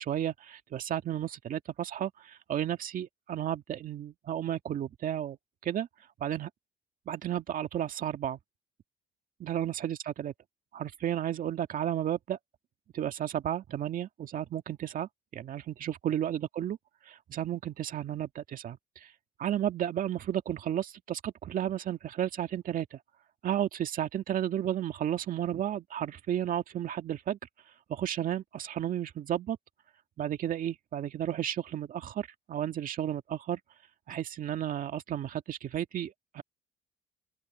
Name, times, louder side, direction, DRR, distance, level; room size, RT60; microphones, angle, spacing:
voice 1, 0.0-5.4 5.6-5.9 6.2-6.5 7.1-8.4 9.4-10.3 10.7-12.4 12.9-16.8 17.1-19.1 19.4-23.0 23.4-27.4 27.9-29.6 30.2-33.6 34.1-36.4, right 10 dB, 55° right, 2.0 m, -33 dB
open air
cardioid pair, 110°, 17 cm